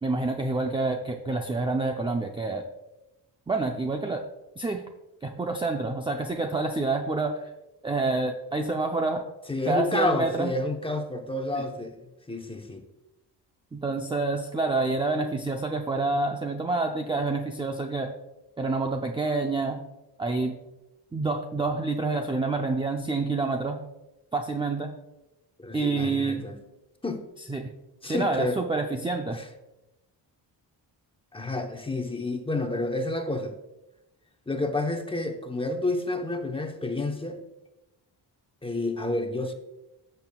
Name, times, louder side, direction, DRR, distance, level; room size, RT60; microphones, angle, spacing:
voice 1, 0.0-2.7 3.5-4.2 4.6-4.8 5.2-7.5 7.8-9.3 9.7-10.5 11.5-11.7 13.7-18.1 18.6-19.8 20.2-20.6 21.1-23.8 24.3-24.9 25.7-26.5 27.5-27.7 28.0-29.4, right 3 dB, 15° right, 3 dB, 0.5 m, -28 dB
voice 2, 9.5-12.0 12.3-12.8 25.6-26.5 27.0-27.3 28.0-28.6 29.3-29.4 31.3-33.5 34.5-37.4 38.6-39.5, left 2 dB, 15° left, 4 dB, 0.8 m, -29 dB
14.0 x 6.8 x 2.3 m, 0.97 s
wide cardioid pair, 130°, 41 cm